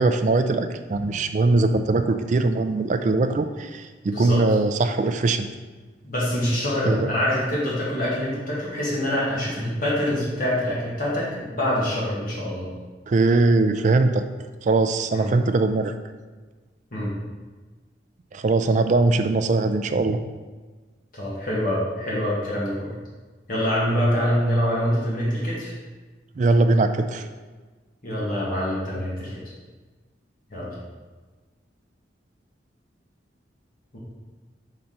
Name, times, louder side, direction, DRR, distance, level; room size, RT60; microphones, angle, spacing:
voice 1, 0.0-5.5 6.8-7.1 13.1-14.3 14.6-15.9 18.3-20.2 26.4-27.2, right 3 dB, 40° right, 8 dB, 0.3 m, -21 dB
voice 2, 4.1-4.4 6.0-12.7 15.1-15.3 16.9-17.1 21.1-22.9 23.5-25.7 28.0-29.4 30.5-30.7 33.9-34.0, equal, 50° left, -6 dB, 1.4 m, -25 dB
5.7 x 3.9 x 4.3 m, 1.3 s
head